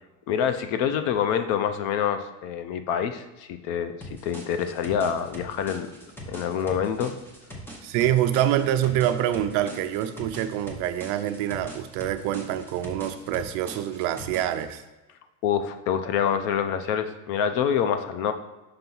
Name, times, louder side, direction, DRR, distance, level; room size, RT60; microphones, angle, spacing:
voice 1, 0.3-3.9 4.2-5.9 6.3-7.1 15.4-18.3, left 8 dB, 50° left, 9 dB, 0.5 m, -26 dB
sound 1, 4.0-14.7, equal, 5° left, 0.7 m, -42 dB
voice 2, 7.8-14.8, right 11 dB, 60° right, 9 dB, 0.5 m, -26 dB
5.9 x 3.4 x 5.4 m, 1.1 s
cardioid pair, 175°, 36 cm